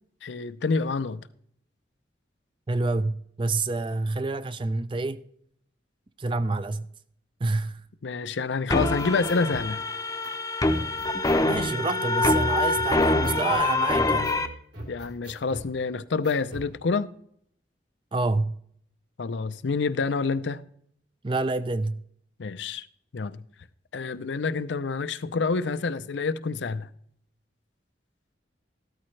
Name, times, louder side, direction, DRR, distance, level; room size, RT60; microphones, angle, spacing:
voice 1, 0.2-1.2 8.0-9.8 14.9-17.1 19.2-20.6 22.4-22.9 23.1-23.4 23.9-26.9, left 4 dB, 75° left, 0.5 m, -28 dB
voice 2, 2.7-5.2 6.2-6.9 7.4-7.8 11.4-14.3 18.1-18.6 21.2-22.0, right 3 dB, 25° right, 0.4 m, -28 dB
sound 1, 8.7-14.5, left 2 dB, 20° left, 0.7 m, -25 dB
sound 2, 8.7-9.7 10.2-10.3 10.7-11.7 12.2-12.4 12.7-13.7 14.2-14.4 14.7-15.7 16.2-16.7, right 1 dB, 65° right, 3.7 m, -41 dB
13.5 x 13.0 x 3.2 m
head